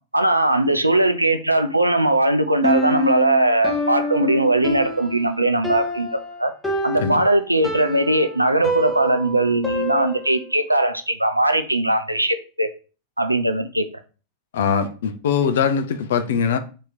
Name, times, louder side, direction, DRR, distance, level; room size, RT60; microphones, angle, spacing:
voice 1, 0.1-6.1 6.4-6.5 6.8-12.7 13.2-13.8, right 1 dB, 85° right, 0.4 m, -19 dB
Piano, 2.6-10.5, left 1 dB, 5° left, 0.8 m, -27 dB
voice 2, 14.5-16.6, left 7 dB, 60° left, 0.4 m, -21 dB
2.9 x 2.7 x 3.9 m
figure-of-eight pair, 90°, 0 cm